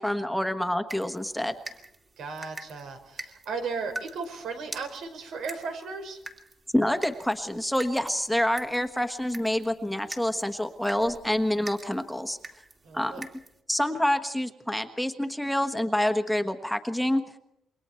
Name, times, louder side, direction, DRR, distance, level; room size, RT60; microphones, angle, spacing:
voice 1, 0.0-1.5 6.7-12.4 12.9-13.3 13.7-17.2, left 1 dB, ahead, 6 dB, 1.3 m, -27 dB
sound 1, 0.9-13.6, right 3 dB, 30° right, 2.6 m, -45 dB
voice 2, 2.2-6.2 12.8-13.2, right 4 dB, 80° right, 5 dB, 5.0 m, -36 dB
28.0 x 23.0 x 4.5 m, 0.81 s
cardioid pair, 140°, 0 cm